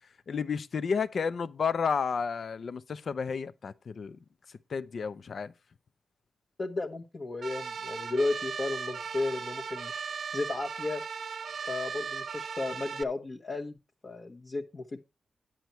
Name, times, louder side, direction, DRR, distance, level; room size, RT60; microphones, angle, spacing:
voice 1, 0.3-4.2 4.7-5.5, left 6 dB, 50° left, 0.7 m, -31 dB
voice 2, 6.6-9.9 10.3-11.0 11.6-13.8 14.0-15.0, left 3 dB, 35° left, 1.2 m, -33 dB
sound 1, 7.4-13.0, right 6 dB, 55° right, 0.5 m, -37 dB
10.0 x 9.3 x 4.4 m
wide cardioid pair, 135°, 0 cm